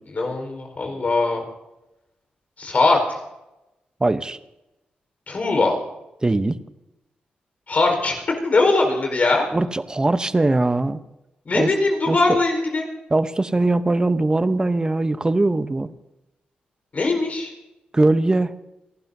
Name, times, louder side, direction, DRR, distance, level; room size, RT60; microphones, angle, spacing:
voice 1, 0.1-1.4 2.6-3.1 5.3-5.8 7.7-8.2 8.4-9.4 11.4-12.9 16.9-17.5, left 3 dB, 50° left, 3 dB, 4.5 m, -20 dB
voice 2, 4.0-4.4 6.2-6.6 9.5-11.0 11.5-11.7 12.1-12.4 13.1-15.9 17.9-18.5, right 2 dB, 25° right, 12 dB, 0.8 m, -20 dB
30.0 x 11.5 x 2.7 m, 0.94 s
cardioid pair, 55°, 3 cm